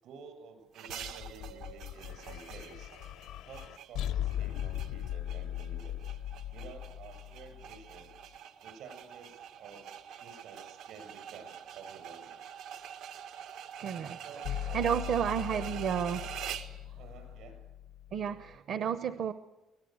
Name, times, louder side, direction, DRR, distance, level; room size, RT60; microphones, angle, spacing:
voice 1, 0.0-3.0 3.4-6.0 6.5-8.1 8.6-9.9 10.2-12.4 14.2-15.4 15.7-15.8 17.0-17.6, right 5 dB, 70° right, 6 dB, 7.7 m, -51 dB
sound 1, 0.7-16.8, right 9 dB, 85° right, 1.6 m, -46 dB
sound 2, 0.9-8.2 14.4-18.5, left 12 dB, 80° left, 0.7 m, -39 dB
voice 2, 13.8-14.2 14.7-16.2 18.1-19.3, right 8 dB, 50° right, 12 dB, 0.8 m, -31 dB
24.0 x 18.0 x 9.4 m, 1.0 s
cardioid pair, 170°, 0 cm